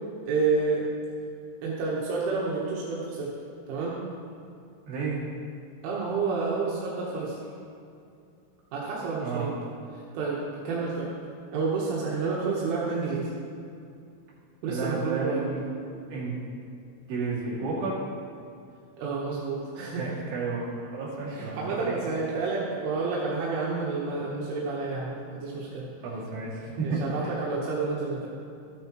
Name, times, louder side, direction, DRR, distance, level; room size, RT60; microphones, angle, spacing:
voice 1, 0.2-0.9 1.6-3.3 3.7-4.0 5.8-7.4 8.7-9.6 10.1-11.1 11.5-13.3 14.6-15.5 19.0-20.2 21.3-25.9 26.8-28.3, right 4 dB, 80° right, -5 dB, 3.6 m, -29 dB
voice 2, 4.9-5.2 9.2-9.5 14.7-15.6 16.1-16.4 17.1-18.0 20.0-21.8 26.0-27.4, right 4 dB, 60° right, -7 dB, 4.1 m, -32 dB
14.0 x 9.6 x 3.0 m, 2.5 s
omnidirectional pair, 5.6 m